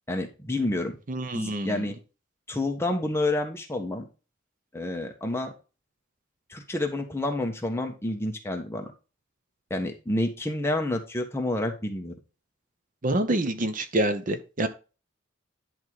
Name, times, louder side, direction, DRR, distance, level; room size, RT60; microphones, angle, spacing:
voice 1, 0.1-1.0 1.3-2.0 2.5-4.1 4.7-5.5 6.5-8.9 9.7-12.1, left 1 dB, 10° left, 3 dB, 1.2 m, -29 dB
voice 2, 1.1-1.8 13.0-14.7, right 1 dB, 40° right, 9 dB, 0.7 m, -27 dB
10.5 x 3.7 x 4.6 m, 0.32 s
head